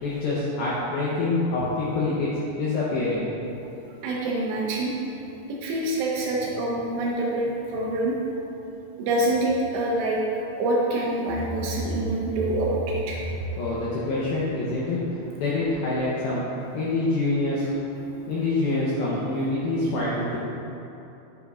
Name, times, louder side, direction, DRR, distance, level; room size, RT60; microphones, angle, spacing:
voice 1, 0.0-2.3 2.6-3.3 13.6-16.5 16.7-17.7 18.3-20.4, left 2 dB, 80° left, -7 dB, 2.1 m, -26 dB
voice 2, 4.0-4.9 5.5-8.2 9.0-10.2 10.5-13.2, right 1 dB, 80° right, -3 dB, 2.7 m, -26 dB
10.0 x 8.0 x 2.4 m, 2.9 s
omnidirectional pair, 5.5 m